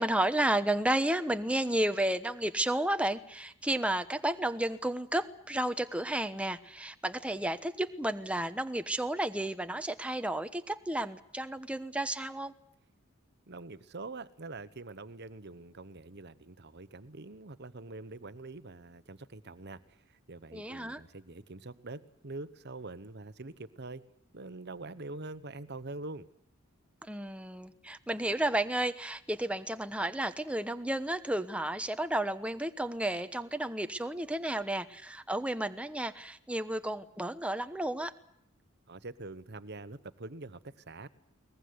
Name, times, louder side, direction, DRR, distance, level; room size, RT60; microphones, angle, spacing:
voice 1, 0.0-12.5 20.5-21.0 27.1-38.1, right 1 dB, 5° right, 9 dB, 1.1 m, -32 dB
voice 2, 13.5-19.8 20.3-24.0 24.3-26.3 38.9-41.1, right 2 dB, 50° right, 14 dB, 1.2 m, -44 dB
22.0 x 20.5 x 9.6 m, 0.71 s
head